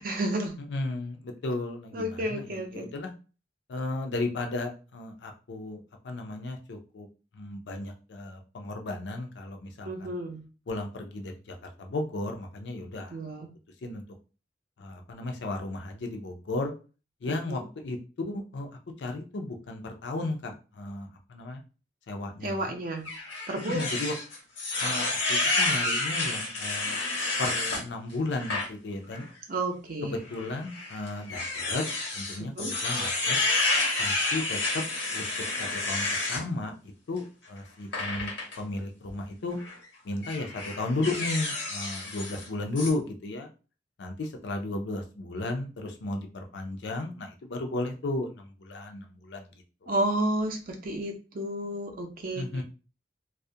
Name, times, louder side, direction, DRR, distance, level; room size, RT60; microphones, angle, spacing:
voice 1, 0.0-0.6 1.9-2.9 9.8-10.4 13.1-13.5 17.3-17.6 22.4-23.1 23.5-23.9 29.5-30.1 32.4-32.7 49.9-52.6, right 1 dB, 50° right, 4 dB, 0.5 m, -31 dB
voice 2, 0.7-3.1 3.7-7.1 7.3-10.1 10.7-13.2 13.8-14.0 14.8-16.7 17.2-18.0 18.3-18.7 19.0-21.6 22.1-22.7 23.7-24.1 24.8-27.0 27.4-29.3 30.0-31.8 32.1-33.4 34.0-34.8 35.1-35.2 35.6-39.6 40.0-43.5 44.0-49.5 49.8-49.9 52.4-52.6, left 2 dB, 70° left, 4 dB, 0.4 m, -34 dB
sound 1, 23.0-27.8 28.3-28.7 29.1-29.2 30.3-36.4 37.9-38.6 39.5-39.8 40.2-42.5 42.8-42.9, left 2 dB, 85° left, 0.9 m, -30 dB
2.3 x 2.1 x 2.6 m, 0.34 s
head